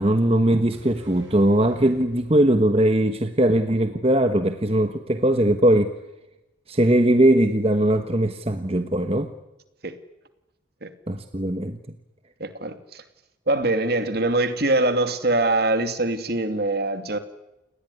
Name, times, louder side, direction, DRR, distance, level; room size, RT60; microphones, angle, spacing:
voice 1, 0.0-5.9 6.7-9.3 11.1-11.8, right 1 dB, 30° right, 1.3 m, -20 dB
sound 1, 0.7-4.3 4.6-4.7, right 1 dB, 75° right, 7.4 m, -49 dB
voice 2, 12.4-13.0 13.5-17.2, right 2 dB, 55° right, 2.6 m, -23 dB
29.5 x 20.0 x 9.8 m
head